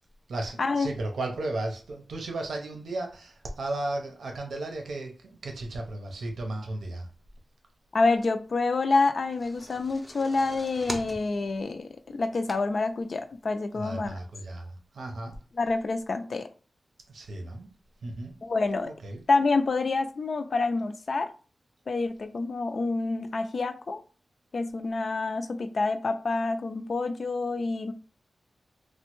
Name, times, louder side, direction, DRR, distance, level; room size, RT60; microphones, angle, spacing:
voice 1, 0.3-7.1 13.7-15.4 17.1-17.7 18.0-18.3 18.8-19.2, right 2 dB, 90° right, 0.7 m, -35 dB
voice 2, 7.9-14.1 15.6-16.5 18.4-18.9 19.3-21.3 21.9-24.0 24.5-27.9, left 3 dB, 55° left, 0.3 m, -27 dB
sound 1, 9.1-13.0 13.5-13.6 13.9-14.0, right 1 dB, 10° right, 0.5 m, -41 dB
3.2 x 2.1 x 3.0 m
wide cardioid pair, 125°, 0 cm